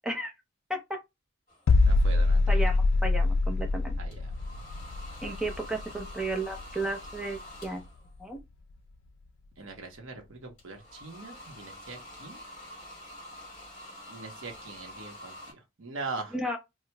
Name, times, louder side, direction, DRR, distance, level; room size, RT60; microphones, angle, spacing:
sound 1, 1.5-1.7 4.1-8.1 10.6-15.5, left 1 dB, 40° left, 2.1 m, -47 dB
sound 2, 1.7-7.4 7.6-7.9, left 3 dB, 85° left, 0.4 m, -25 dB
voice 1, 1.8-2.6 4.0-4.3 9.6-12.4 14.1-16.4, right 3 dB, 80° right, 1.0 m, -41 dB
voice 2, 2.5-4.0 5.2-7.8 8.2-8.4 16.3-16.6, right 2 dB, 5° right, 0.6 m, -33 dB
4.4 x 2.2 x 2.2 m
head